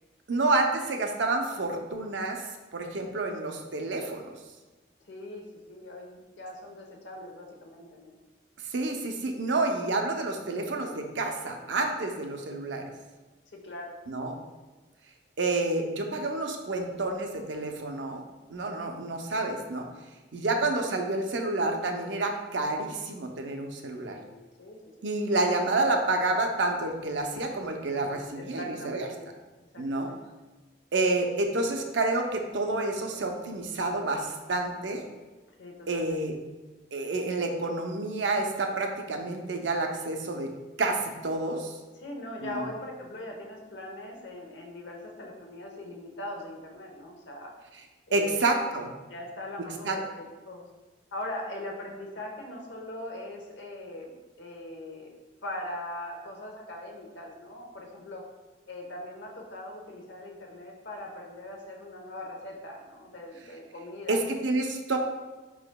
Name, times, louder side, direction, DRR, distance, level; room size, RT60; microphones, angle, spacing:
voice 1, 0.3-2.4 2.7-4.2 8.7-12.9 14.1-14.4 15.4-18.2 18.5-19.9 20.3-24.2 25.0-29.1 29.8-30.1 30.9-35.0 35.9-36.3 36.9-40.5 40.8-41.7 42.4-42.7 48.1-48.9 49.8-50.0 64.1-65.0, right 2 dB, 85° right, 4 dB, 0.6 m, -29 dB
voice 2, 5.1-5.4 5.7-8.1 13.5-13.9 24.0-24.3 24.6-25.1 27.9-29.1 29.7-30.2 35.6-36.2 41.9-47.5 48.1-48.4 49.1-50.0 50.5-50.6 51.1-55.1 55.4-58.2 58.7-64.2, left 1 dB, 80° left, 0 dB, 0.9 m, -41 dB
4.8 x 4.8 x 2.2 m, 1.2 s
head